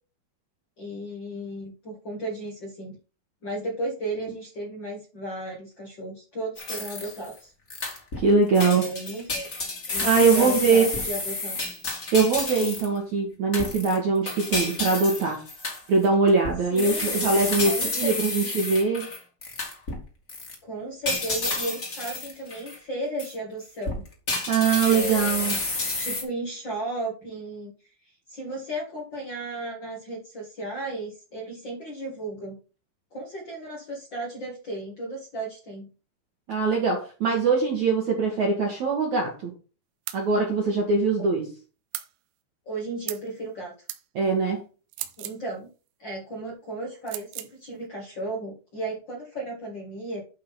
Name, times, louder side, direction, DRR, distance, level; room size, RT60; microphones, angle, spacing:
voice 1, 0.8-3.0 3.4-7.5 8.6-9.5 9.9-11.6 16.7-18.2 18.4-18.5 20.6-24.0 24.9-25.6 26.0-27.7 28.3-32.6 33.1-35.9 41.2-41.3 42.6-43.7 45.2-45.7 46.0-50.2, right 2 dB, 80° left, -2 dB, 1.0 m, -34 dB
sound 1, 6.6-7.3 7.7-8.3 8.5-13.0 13.5-20.0 20.3-20.5 21.0-22.8 23.2-23.3 23.8-26.2, left 2 dB, 35° left, 1.3 m, -30 dB
voice 2, 8.2-8.9 10.0-10.9 12.1-15.4 15.9-19.1 24.5-25.6 36.5-39.5 40.1-41.5 44.2-44.6, right 4 dB, 60° right, 0 dB, 2.0 m, -22 dB
sound 2, 40.1-40.3 41.9-42.1 43.1-43.3 43.9-44.0 44.9-45.4 47.1-47.5, right 16 dB, 90° right, 3.5 m, -35 dB
11.5 x 3.9 x 5.7 m, 0.35 s
omnidirectional pair, 5.7 m